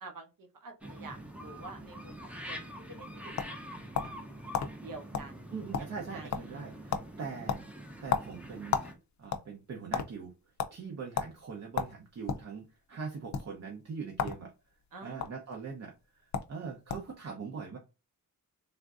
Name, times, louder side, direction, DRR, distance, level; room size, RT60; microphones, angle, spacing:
voice 1, 0.0-3.3 4.0-4.1 4.8-5.3 6.1-6.3 14.9-15.3, right 3 dB, 70° right, 4 dB, 0.9 m, -48 dB
sound 1, 0.8-9.0, equal, 5° right, 0.5 m, -45 dB
sound 2, 2.8-4.2 4.5-4.7 5.1-5.3 5.6-6.1 6.3-6.6 6.9-7.1 7.5-8.9 9.2-10.1 10.6-10.7 11.1-11.3 11.7-12.5 13.2-13.4 14.1-14.4 14.7-15.3 16.0-16.1 16.3-16.5 16.9-17.1, left 7 dB, 55° left, 0.5 m, -32 dB
voice 2, 5.5-7.6 8.0-8.8 9.2-10.3 10.7-14.5 15.0-17.8, right 5 dB, 50° right, 0 dB, 0.6 m, -42 dB
3.4 x 2.5 x 2.4 m, 0.28 s
wide cardioid pair, 175°, 34 cm